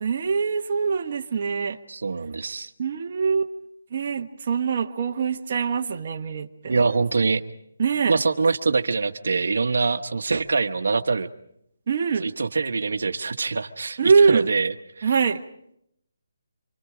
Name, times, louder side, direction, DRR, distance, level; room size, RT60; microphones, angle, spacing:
voice 1, 0.0-1.8 2.8-3.5 3.9-6.9 7.8-8.2 11.9-12.3 14.0-14.4 15.0-15.4, right 5 dB, 40° right, 3 dB, 1.1 m, -23 dB
voice 2, 1.9-2.7 6.7-7.4 8.0-11.3 12.2-15.1, right 4 dB, 70° right, 8 dB, 1.2 m, -24 dB
28.0 x 25.0 x 5.0 m, 0.76 s
hypercardioid pair, 165°, 0 cm